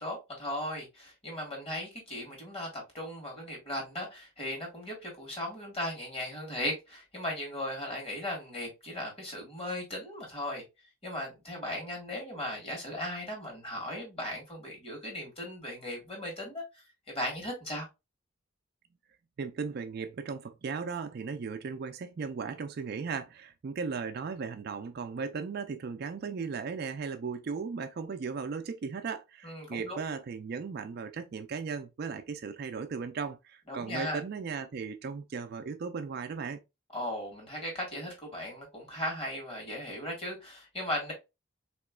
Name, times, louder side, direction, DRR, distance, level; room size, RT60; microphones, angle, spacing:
voice 1, 0.0-10.6 11.0-17.9 29.4-30.0 33.7-34.2 36.9-41.1, left 1 dB, 30° left, 1.6 m, -37 dB
voice 2, 19.4-36.6, right 5 dB, 50° right, 0.4 m, -36 dB
3.5 x 2.9 x 2.3 m
head